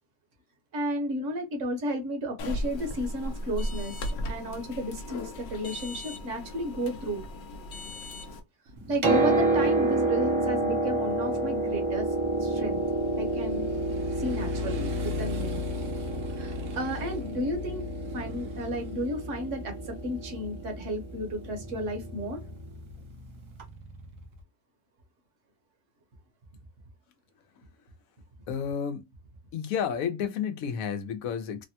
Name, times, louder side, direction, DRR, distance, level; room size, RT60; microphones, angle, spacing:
voice 1, 0.7-4.0 4.3-7.2 8.9-12.1 12.4-12.8 13.2-13.7 14.2-15.6 16.3-17.8 18.1-22.4, equal, 65° right, 1.3 m, -33 dB
sound 1, 2.4-8.4, equal, 60° left, 0.8 m, -36 dB
Motorcycle, 8.7-24.4, left 3 dB, 80° right, 1.2 m, -39 dB
Piano, 8.8-22.5 23.6-23.7, right 2 dB, 35° right, 0.4 m, -29 dB
voice 2, 28.5-29.1 29.5-31.7, left 7 dB, 80° left, 1.1 m, -31 dB
3.3 x 2.2 x 2.7 m
omnidirectional pair, 1.4 m